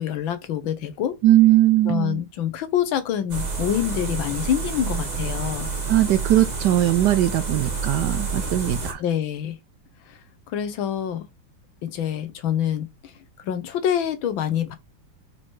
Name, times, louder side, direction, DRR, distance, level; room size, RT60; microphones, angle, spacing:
voice 1, 0.0-1.2 1.8-5.7 9.0-9.6 10.5-11.2 11.8-12.9 13.4-14.8, left 10 dB, 75° left, 1.7 m, -26 dB
voice 2, 1.2-2.2 5.9-9.0, right 14 dB, 70° right, 1.0 m, -19 dB
sound 1, 3.3-8.9, right 4 dB, 25° right, 1.1 m, -29 dB
4.9 x 4.3 x 4.7 m
omnidirectional pair, 2.2 m